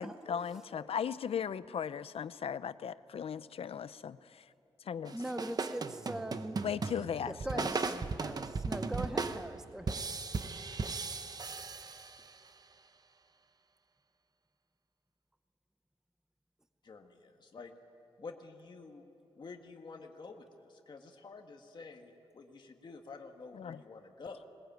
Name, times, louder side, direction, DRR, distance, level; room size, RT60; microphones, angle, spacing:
voice 1, 0.0-4.4 4.9-5.2 6.6-7.7 23.5-23.8, left 8 dB, 70° left, 15 dB, 0.6 m, -37 dB
voice 2, 5.1-6.6 6.9-10.0, right 1 dB, 5° right, 9 dB, 0.6 m, -41 dB
sound 1, 5.1-12.5, right 4 dB, 40° right, 0.8 m, -37 dB
voice 3, 16.8-17.7 18.2-19.0 19.3-24.4, left 4 dB, 45° left, 3 dB, 1.6 m, -49 dB
20.5 x 19.5 x 9.2 m, 3.0 s
wide cardioid pair, 150°, 10 cm